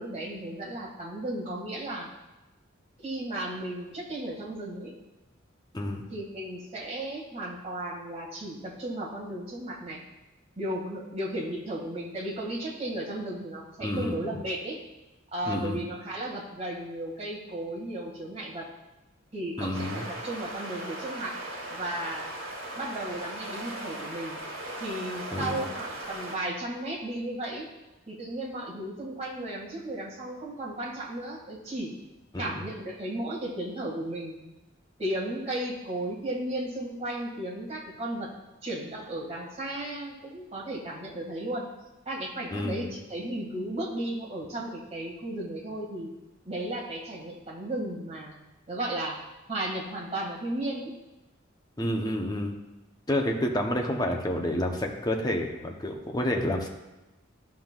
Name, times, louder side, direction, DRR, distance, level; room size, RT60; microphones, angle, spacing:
voice 1, 0.0-2.1 3.0-4.9 6.1-10.0 10.6-14.8 15.3-18.7 19.3-21.4 21.7-22.3 22.8-24.4 24.8-27.7 28.1-32.0 32.4-34.4 35.0-38.3 38.6-41.7 42.1-46.1 46.4-48.4 48.7-49.2 49.5-50.9, right 1 dB, 30° right, -3 dB, 2.0 m, -34 dB
voice 2, 13.8-14.4 15.5-15.8 19.6-20.0 25.3-25.6 32.3-32.7 42.5-42.9 51.8-52.5 53.1-56.7, left 1 dB, 20° left, 2 dB, 0.8 m, -29 dB
sound 1, 19.7-26.4, right 1 dB, 85° right, 1.7 m, -38 dB
13.5 x 5.7 x 2.4 m, 1.0 s
head